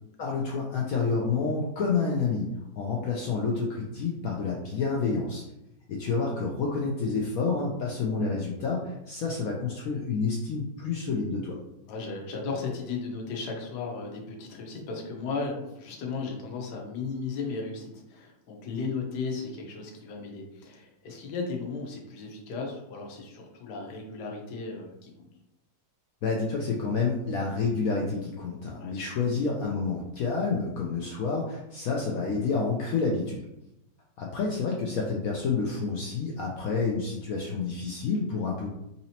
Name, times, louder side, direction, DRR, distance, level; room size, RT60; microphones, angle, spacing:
voice 1, 0.2-5.4 5.9-11.6 26.2-33.4 34.2-38.7, left 4 dB, 85° left, -2 dB, 0.7 m, -29 dB
voice 2, 11.9-25.3 28.8-29.4, left 4 dB, 65° left, 0 dB, 1.2 m, -35 dB
4.1 x 2.8 x 2.8 m, 0.88 s
omnidirectional pair, 2.1 m